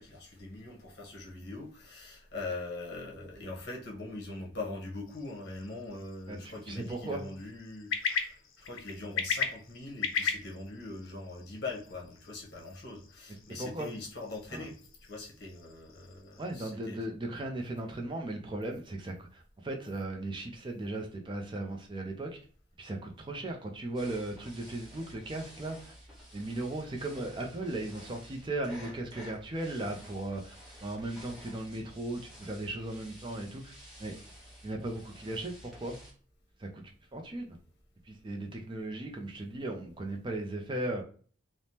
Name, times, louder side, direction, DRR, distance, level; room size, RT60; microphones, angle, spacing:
voice 1, 0.0-14.8 15.0-17.1, left 2 dB, 55° left, 0.9 m, -42 dB
sound 1, 5.1-16.7, left 6 dB, 80° left, 0.5 m, -39 dB
voice 2, 6.3-7.2 13.6-13.9 14.5-14.6 16.4-22.4 22.8-25.9 26.3-30.5 30.8-33.7 34.0-34.1 34.6-36.0 36.6-36.8 37.1-37.5 38.1-41.0, right 2 dB, 25° right, 0.3 m, -37 dB
sound 2, 23.9-36.1, equal, ahead, 1.0 m, -51 dB
3.3 x 2.0 x 2.7 m
head